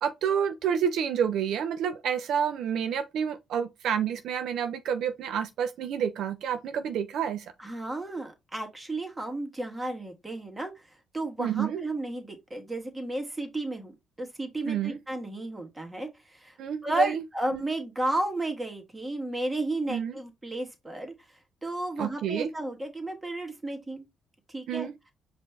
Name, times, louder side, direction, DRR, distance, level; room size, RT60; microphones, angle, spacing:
voice 1, 0.0-7.5 11.4-11.8 14.7-15.0 16.6-17.2 17.5-17.6 19.9-20.1 22.0-22.5 24.7-24.9, right 8 dB, 75° right, 0.5 m, -29 dB
voice 2, 7.6-16.6 16.8-24.0 24.5-24.9, right 1 dB, 15° right, 1.4 m, -33 dB
5.1 x 2.6 x 3.4 m
cardioid pair, 90°, 0 cm